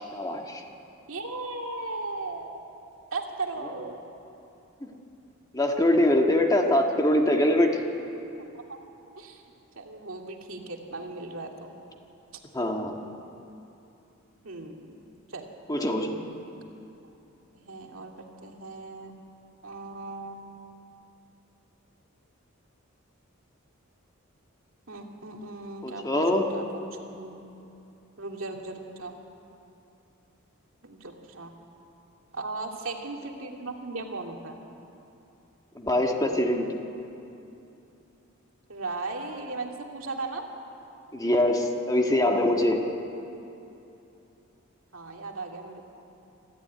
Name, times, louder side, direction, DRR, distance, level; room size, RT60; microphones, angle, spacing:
voice 1, 0.1-0.6 4.8-5.0 5.5-7.7 12.5-12.9 15.7-16.2 25.8-26.5 35.8-36.7 41.1-42.8, left 1 dB, 20° left, 2 dB, 1.6 m, -23 dB
voice 2, 1.1-2.5 3.1-4.0 8.5-8.8 9.2-9.4 9.8-11.7 14.4-14.8 15.3-15.5 17.5-18.1 18.4-19.1 19.6-20.4 24.9-27.3 28.2-29.1 30.8-31.5 32.3-34.6 38.7-40.5 44.9-45.9, right 3 dB, 70° right, 1 dB, 2.4 m, -37 dB
25.5 x 13.5 x 9.4 m, 2.8 s
head